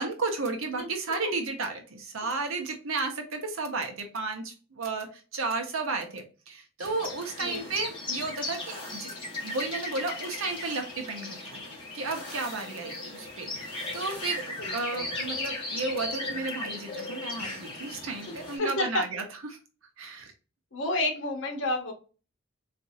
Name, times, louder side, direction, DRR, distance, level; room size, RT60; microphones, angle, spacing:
voice 1, 0.0-5.1 5.3-9.1 9.4-11.6 11.9-19.2 20.0-20.3, right 3 dB, 75° right, 5 dB, 0.8 m, -33 dB
sound 1, 6.8-18.6, left 2 dB, 25° left, 1.3 m, -37 dB
voice 2, 14.6-15.1 18.3-19.0 20.7-21.9, left 2 dB, 60° left, 2 dB, 1.0 m, -30 dB
4.0 x 2.6 x 2.6 m, 0.35 s
head